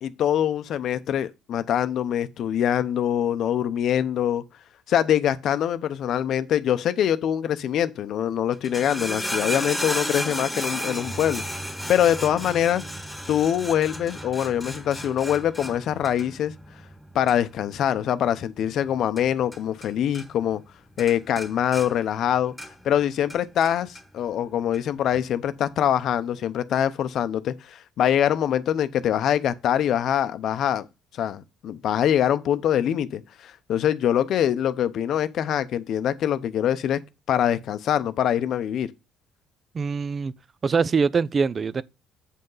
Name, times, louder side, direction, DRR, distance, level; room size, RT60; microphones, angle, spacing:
voice 1, 0.0-4.4 4.9-12.8 13.3-16.5 17.1-20.6 21.0-22.5 22.8-30.9 31.2-37.0 37.3-38.9, left 10 dB, 60° left, 0.7 m, -24 dB
sound 1, 8.5-19.9 20.1-20.7 21.0-22.9 23.3-24.0 24.7-24.8, equal, ahead, 1.5 m, -34 dB
voice 2, 39.7-40.3 40.6-41.8, right 5 dB, 30° right, 0.4 m, -23 dB
8.4 x 5.5 x 3.9 m
cardioid pair, 120°, 0 cm